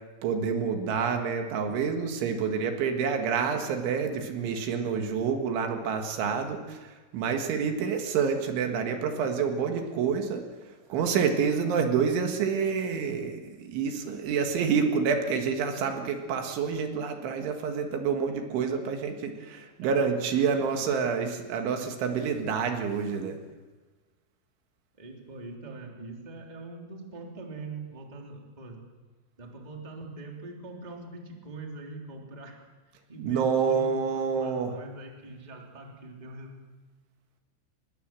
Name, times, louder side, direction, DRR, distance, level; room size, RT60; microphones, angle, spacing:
voice 1, 0.2-10.4 10.9-23.4 33.2-34.8, right 6 dB, 70° right, 5 dB, 4.0 m, -28 dB
voice 2, 25.0-28.8 29.4-32.6 33.1-36.5, right 3 dB, 10° right, 0 dB, 2.3 m, -43 dB
24.0 x 21.5 x 7.6 m, 1.3 s
omnidirectional pair, 5.7 m